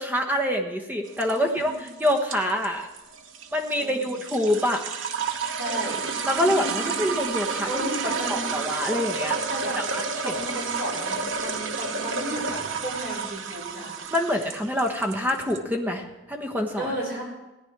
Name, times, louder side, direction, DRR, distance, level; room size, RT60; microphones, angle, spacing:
voice 1, 0.0-2.9 3.5-4.8 6.3-7.9 8.3-9.4 9.9-10.3 14.1-16.9, left 1 dB, 10° right, 3 dB, 1.2 m, -26 dB
sound 1, 1.1-15.6, right 5 dB, 85° right, 0.9 m, -31 dB
voice 2, 1.3-1.8 3.8-4.1 5.6-6.0 6.8-7.0 7.7-8.5 9.5-9.8 10.1-14.0 16.8-17.2, equal, 55° right, -5 dB, 4.5 m, -34 dB
17.5 x 9.7 x 4.7 m, 1.0 s
head